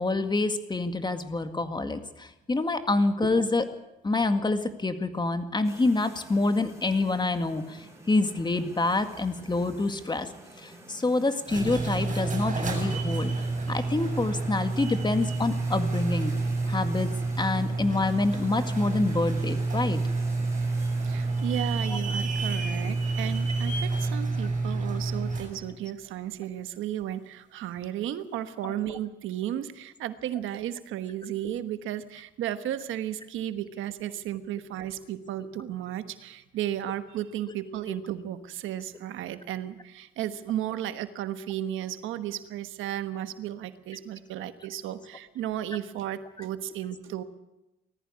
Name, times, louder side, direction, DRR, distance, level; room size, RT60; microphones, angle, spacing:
voice 1, 0.0-3.6 4.0-10.3 10.6-13.3 13.7-16.3 16.7-17.1 17.4-20.0 28.6-28.7, left 2 dB, 20° left, 8 dB, 2.0 m, -27 dB
sound 1, 5.6-24.1, right 2 dB, 15° right, 7.0 m, -50 dB
sound 2, 11.3-25.6, right 3 dB, 40° right, 7.5 m, -29 dB
voice 2, 21.0-47.2, right 11 dB, 90° right, 10 dB, 1.3 m, -34 dB
19.0 x 14.5 x 9.6 m, 0.96 s
cardioid pair, 90°, 20 cm